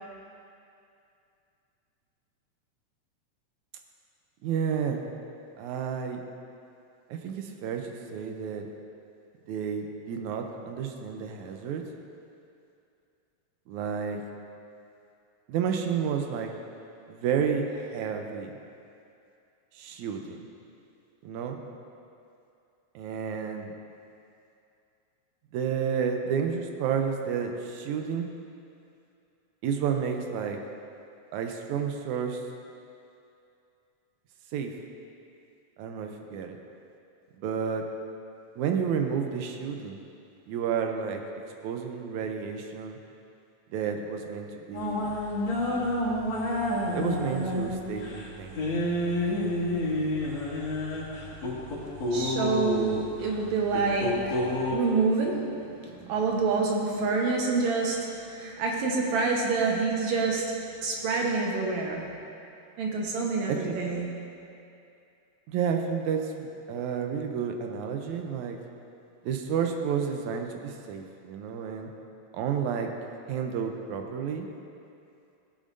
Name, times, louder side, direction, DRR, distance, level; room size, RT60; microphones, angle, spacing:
voice 1, 4.4-5.1 5.6-6.2 7.1-8.7 9.5-11.9 13.7-14.2 15.5-16.5 17.1-18.5 19.7-20.4 21.2-21.6 23.0-23.7 25.5-28.3 29.6-30.6 31.3-32.4 34.5-34.7 35.8-36.6 37.4-37.9 38.6-40.0 40.5-41.2 41.6-43.0 43.7-45.1 46.9-48.6 63.5-63.8 65.5-68.6 69.2-71.9 72.3-72.9 73.3-74.5, right 7 dB, 90° right, 4 dB, 2.1 m, -31 dB
sound 1, 44.7-54.8, left 1 dB, 65° left, 3.1 m, -30 dB
voice 2, 52.1-54.4 54.7-60.4 60.8-62.1 62.8-64.1, right 4 dB, 75° right, -1 dB, 2.4 m, -27 dB
16.5 x 8.6 x 2.6 m, 2.6 s
omnidirectional pair, 3.3 m